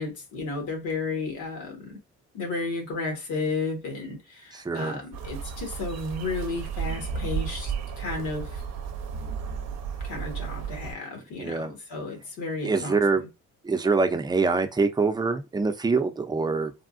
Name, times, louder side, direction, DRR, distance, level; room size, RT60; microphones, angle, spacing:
voice 1, 0.0-2.0 2.3-8.6 10.0-13.0, left 3 dB, 90° left, 1.3 m, -33 dB
voice 2, 4.5-5.0 11.3-11.7 12.6-13.2 13.6-16.7, right 4 dB, 15° right, 0.5 m, -25 dB
sound 1, 5.1-10.9, right 6 dB, 60° right, 0.6 m, -33 dB
3.5 x 2.3 x 2.5 m
cardioid pair, 90°, 30 cm